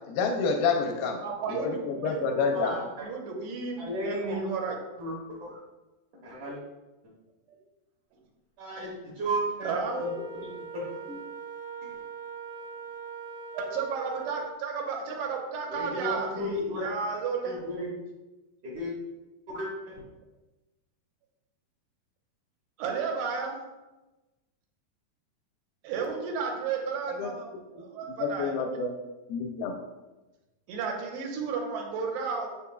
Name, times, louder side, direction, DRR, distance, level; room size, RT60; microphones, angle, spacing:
voice 1, 0.1-1.2 1.5-2.7 27.2-27.3 28.2-28.9 29.3-29.8, left 5 dB, 85° left, 3 dB, 2.2 m, -28 dB
voice 2, 1.0-4.8 9.6-10.0 13.5-17.6 22.8-23.6 25.8-27.5 27.7-28.8 30.7-32.5, right 5 dB, 80° right, 0 dB, 3.0 m, -33 dB
voice 3, 2.1-3.1 3.8-4.5 5.0-5.6 6.2-6.6 8.6-11.2 15.7-16.9 17.4-17.9 18.6-18.9 19.5-20.0, equal, 65° right, -6 dB, 2.1 m, -34 dB
Wind instrument woodwind instrument, 9.6-14.5, right 4 dB, 20° right, 0.5 m, -41 dB
6.9 x 6.8 x 2.3 m, 1.1 s
omnidirectional pair, 4.7 m